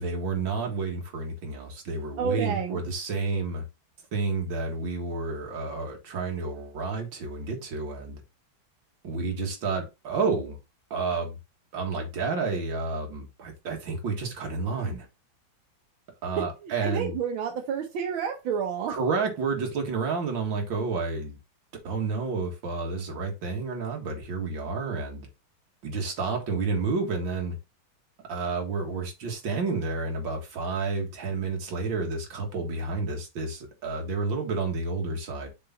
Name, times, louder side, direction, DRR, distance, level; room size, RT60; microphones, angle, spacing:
voice 1, 0.0-3.6 4.1-8.2 9.0-10.6 10.9-11.4 11.7-15.1 16.2-17.2 18.9-21.4 21.8-25.3 25.8-27.6 28.3-35.5, right 4 dB, 70° right, 2.4 m, -30 dB
voice 2, 2.2-2.8 16.6-18.9, right 7 dB, 90° right, 1.8 m, -30 dB
6.7 x 4.0 x 3.9 m
omnidirectional pair, 2.1 m